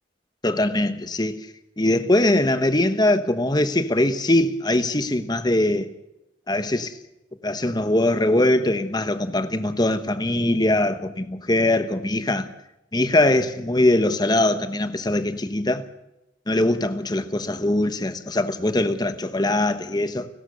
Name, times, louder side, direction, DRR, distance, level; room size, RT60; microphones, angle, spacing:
voice 1, 0.4-1.3 1.8-5.9 6.5-6.9 7.4-12.5 12.9-15.8 16.5-20.3, left 1 dB, 20° left, 1.1 m, -22 dB
30.0 x 13.0 x 6.8 m
head